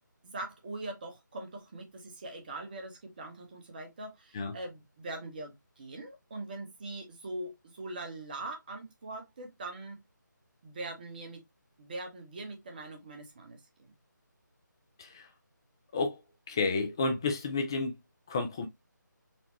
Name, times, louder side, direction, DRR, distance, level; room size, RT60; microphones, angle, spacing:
voice 1, 0.2-10.0 10.6-11.4 11.8-13.9, right 2 dB, 30° right, 0.9 m, -42 dB
voice 2, 16.5-17.9 18.3-18.7, left 3 dB, 10° left, 0.4 m, -31 dB
4.2 x 2.2 x 3.0 m
figure-of-eight pair, 155°, 11 cm